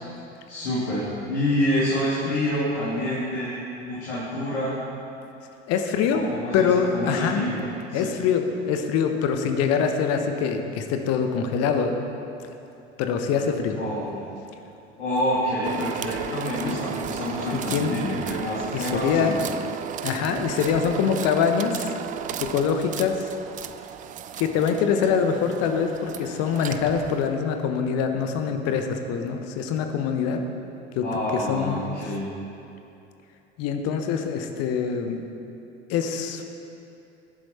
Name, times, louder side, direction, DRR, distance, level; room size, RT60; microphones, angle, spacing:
voice 1, 0.5-1.0 1.3-4.7 6.1-7.6 7.9-8.1 13.8-14.3 15.0-19.4 31.0-32.3, left 1 dB, 70° left, -8 dB, 2.8 m, -27 dB
voice 2, 5.7-6.2 6.5-7.4 7.9-12.0 13.0-13.8 16.6-16.8 17.5-18.0 18.7-19.4 20.0-22.0 22.4-23.3 24.4-30.4 30.9-31.0 31.3-31.8 33.6-35.2 35.9-36.4, left 6 dB, 45° left, 6 dB, 1.1 m, -24 dB
sound 1, 15.6-27.3, right 10 dB, 20° right, 0.4 m, -35 dB
20.5 x 7.9 x 4.4 m, 2.8 s
figure-of-eight pair, 70°, 36 cm